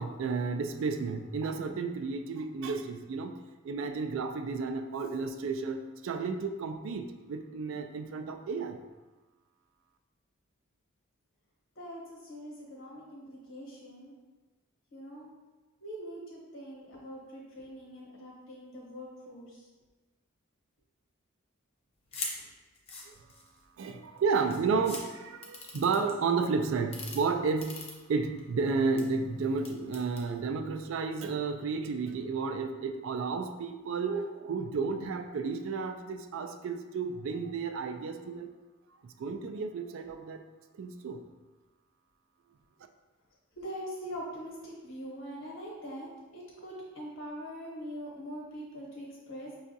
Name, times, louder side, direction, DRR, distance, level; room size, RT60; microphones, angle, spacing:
voice 1, 0.0-3.4 3.6-8.8 23.8-38.5 39.0-40.4 40.7-41.2, right 4 dB, 65° right, 6 dB, 0.3 m, -32 dB
voice 2, 11.8-14.1 14.9-15.3 15.8-19.7 43.6-49.5, equal, 65° left, -4 dB, 1.1 m, -43 dB
sound 1, 22.1-22.3 22.7-23.6 24.2-24.3 24.5-25.0 25.4-26.1 26.8-27.2 27.6-28.4 28.8-29.0 29.6-30.2, left 3 dB, 30° left, 0.5 m, -40 dB
5.5 x 2.4 x 2.6 m, 1.2 s
head